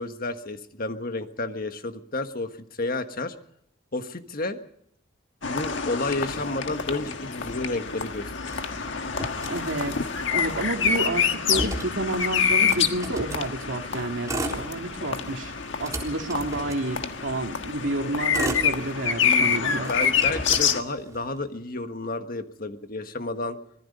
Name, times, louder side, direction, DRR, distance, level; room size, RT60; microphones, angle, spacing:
voice 1, 0.0-2.5 2.8-3.3 3.9-4.6 5.4-8.7 19.2-23.6, left 2 dB, 45° left, 8 dB, 1.5 m, -31 dB
sound 1, 5.4-20.8, left 6 dB, 65° left, 1.6 m, -27 dB
Motor vehicle (road), 8.4-10.1 10.4-10.5 10.7-13.5 14.1-15.2 15.6-17.4 18.0-19.4 19.8-21.4, right 1 dB, 15° right, 3.7 m, -35 dB
voice 2, 9.5-10.0 10.3-15.5 15.8-20.2, right 1 dB, 70° right, 3 dB, 2.7 m, -30 dB
25.0 x 20.0 x 5.4 m, 0.71 s
head